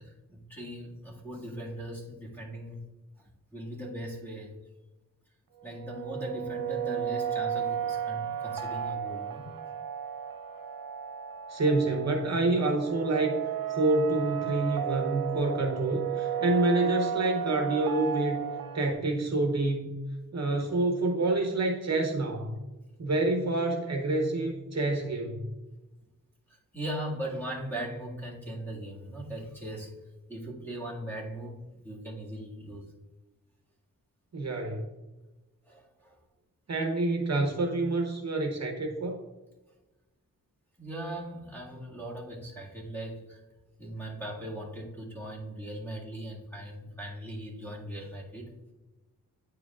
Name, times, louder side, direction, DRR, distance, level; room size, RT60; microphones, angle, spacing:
voice 1, 0.0-2.8 3.2-4.5 5.6-9.5 26.5-29.9 30.3-32.9 35.7-36.2 40.8-43.4 43.8-48.5, right 1 dB, 5° left, -4 dB, 1.8 m, -39 dB
sound 1, 5.6-18.9, right 9 dB, 80° right, 0.7 m, -34 dB
voice 2, 11.5-18.4 18.7-19.9 20.3-22.6 23.0-25.5 34.3-34.9 36.7-39.2, right 2 dB, 50° right, 2 dB, 0.8 m, -27 dB
9.4 x 4.9 x 2.4 m, 1.1 s
wide cardioid pair, 100°, 34 cm